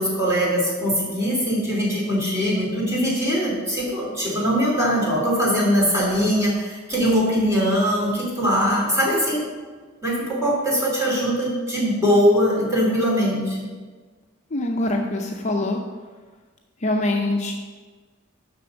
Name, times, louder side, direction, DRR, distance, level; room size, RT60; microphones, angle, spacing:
voice 1, 0.0-9.4 10.0-13.7, equal, 15° right, -5 dB, 3.1 m, -21 dB
voice 2, 14.5-15.8 16.8-17.6, left 2 dB, 35° left, 2 dB, 0.6 m, -24 dB
6.8 x 6.1 x 6.9 m, 1.4 s
head